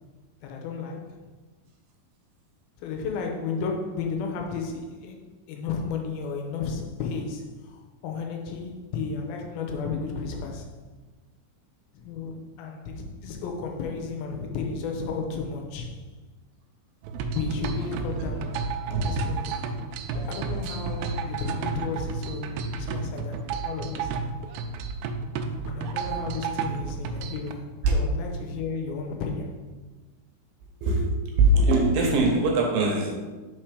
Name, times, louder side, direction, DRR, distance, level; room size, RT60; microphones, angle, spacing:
voice 1, 0.4-1.2 2.8-10.7 11.9-16.0 17.3-19.6 20.1-24.1 25.7-29.6, left 4 dB, 85° left, 2 dB, 2.5 m, -33 dB
sound 1, 17.0-27.5, right 4 dB, 90° right, 2.5 m, -32 dB
voice 2, 18.9-19.2 27.8-28.0 30.8-31.1 31.4-33.1, right 2 dB, 75° right, 1 dB, 2.5 m, -21 dB
5.5 x 4.5 x 4.8 m, 1.3 s
omnidirectional pair, 4.4 m